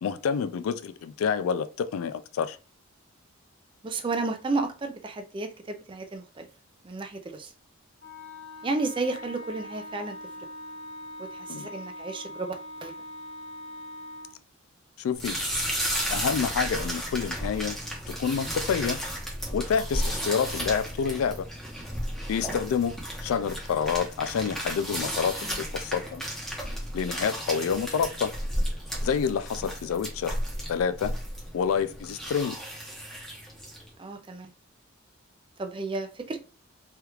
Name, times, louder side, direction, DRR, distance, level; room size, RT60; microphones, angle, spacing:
voice 1, 0.0-2.6 11.5-11.7 15.0-15.4 16.1-17.8 18.2-19.0 19.5-21.4 22.3-23.0 23.2-26.2 26.9-28.3 29.0-30.4 30.7-31.1 31.5-32.6, left 6 dB, 80° left, 0.3 m, -28 dB
voice 2, 3.8-6.5 6.8-7.5 8.6-10.2 11.3-12.5 12.8-12.9 25.4-25.6 34.0-34.5 35.6-36.4, right 3 dB, 25° right, 0.4 m, -32 dB
Wind instrument woodwind instrument, 8.0-14.4, left 1 dB, 65° left, 1.1 m, -42 dB
sound 1, 15.1-33.9, equal, ahead, 0.8 m, -33 dB
3.3 x 2.3 x 2.9 m
head